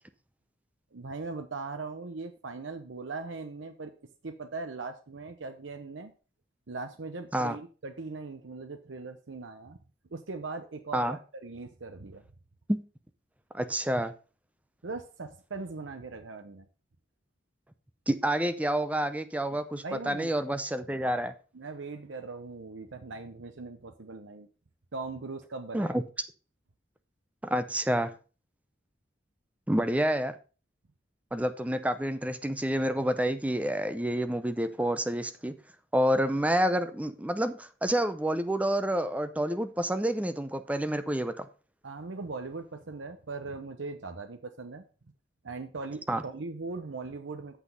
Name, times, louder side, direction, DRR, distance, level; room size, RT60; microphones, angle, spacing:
voice 1, 0.9-3.9 4.2-6.1 6.7-9.8 10.1-12.2 14.8-16.7 19.8-20.3 21.5-24.5 24.9-26.0 41.8-44.8 45.4-47.6, right 3 dB, 85° right, 7 dB, 0.8 m, -40 dB
voice 2, 13.5-14.1 18.1-21.3 25.7-26.0 27.4-28.1 29.7-30.3 31.3-35.5 35.9-41.5 46.1-46.2, right 1 dB, 10° right, 10 dB, 0.6 m, -28 dB
8.2 x 6.1 x 5.3 m, 0.35 s
head